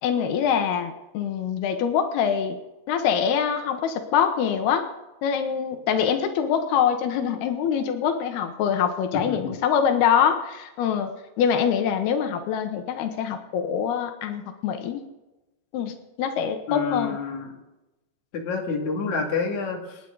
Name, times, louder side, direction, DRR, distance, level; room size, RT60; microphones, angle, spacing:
voice 1, 0.0-2.6 2.9-4.9 5.2-11.1 11.4-15.0 15.7-17.2, left 8 dB, 90° left, 6 dB, 3.1 m, -24 dB
voice 2, 16.7-17.5 18.3-20.0, left 5 dB, 55° left, 0 dB, 3.5 m, -28 dB
28.0 x 9.8 x 3.9 m, 1.0 s
omnidirectional pair, 4.4 m